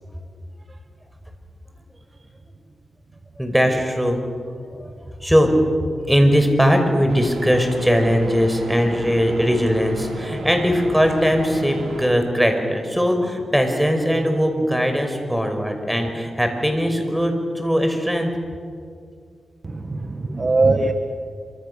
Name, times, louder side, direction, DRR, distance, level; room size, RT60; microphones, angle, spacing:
voice 1, 3.4-4.2 4.8-4.9 5.2-5.5 6.1-18.3, equal, 5° right, 5 dB, 5.3 m, -20 dB
sound 1, 7.1-12.1, right 3 dB, 70° right, 4.9 m, -34 dB
voice 2, 19.6-20.9, right 3 dB, 45° right, 7 dB, 1.5 m, -20 dB
26.5 x 25.5 x 6.9 m, 2.2 s
cardioid pair, 60°, 0 cm